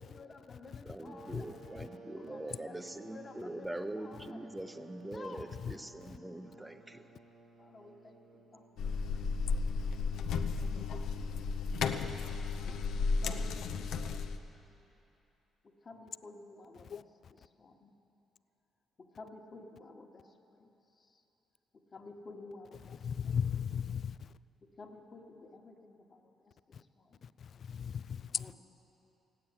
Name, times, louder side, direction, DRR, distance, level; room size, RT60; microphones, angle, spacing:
voice 1, 0.0-5.6 7.6-8.7 10.4-12.0 13.2-14.2 15.6-17.9 19.0-21.2 21.7-23.4 24.6-27.3 28.3-28.5, left 3 dB, 40° left, 1.5 m, -53 dB
voice 2, 0.9-7.0, right 1 dB, 10° right, 0.8 m, -43 dB
sound 1, 1.0-9.4, right 2 dB, 65° right, 2.3 m, -56 dB
sound 2, 8.8-14.4, left 4 dB, 75° left, 0.7 m, -34 dB
voice 3, 23.0-24.3 26.7-26.8 27.2-28.5, left 7 dB, 55° left, 0.3 m, -37 dB
15.5 x 8.9 x 9.7 m
cardioid pair, 90°, 0 cm